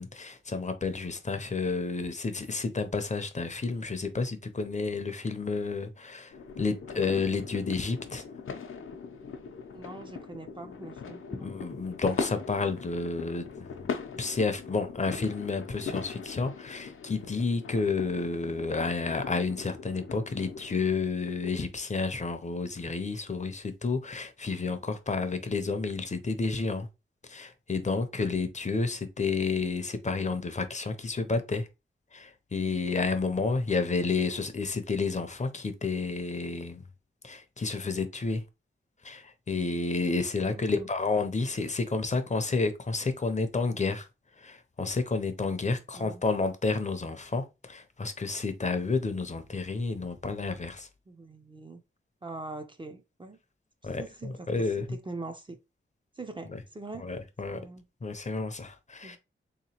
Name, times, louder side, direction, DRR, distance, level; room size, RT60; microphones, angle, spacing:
voice 1, 0.0-8.2 11.4-13.9 14.1-26.9 27.2-31.7 32.1-36.8 37.2-38.4 39.0-44.1 44.4-50.9 53.8-54.8 56.5-56.6 57.0-57.6 58.0-59.2, left 4 dB, 35° left, 0.5 m, -30 dB
sound 1, 6.3-20.8, left 5 dB, 85° left, 0.5 m, -40 dB
voice 2, 9.7-11.5 40.4-40.9 46.0-46.2 51.1-51.8 52.2-53.4 53.8-55.6 56.2-57.1 57.5-57.9 59.0-59.2, right 3 dB, 25° right, 0.4 m, -43 dB
3.6 x 2.8 x 2.8 m
wide cardioid pair, 110°, 21 cm